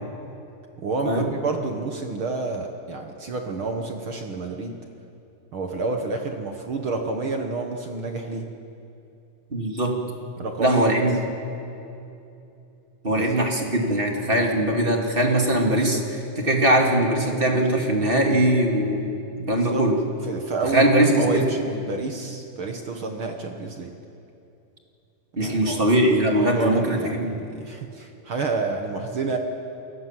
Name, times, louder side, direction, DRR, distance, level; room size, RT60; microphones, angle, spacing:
voice 1, 0.8-4.8 5.5-8.5 10.4-11.0 13.1-13.3 19.4-19.9 20.2-23.9 25.4-25.8 26.4-29.4, right 3 dB, 50° right, 3 dB, 1.7 m, -29 dB
voice 2, 9.5-10.0 10.6-11.1 13.0-19.1 19.5-20.0 20.7-21.5 25.4-27.3, right 1 dB, 20° right, 1 dB, 2.3 m, -21 dB
28.5 x 18.5 x 7.6 m, 2.7 s
omnidirectional pair, 3.9 m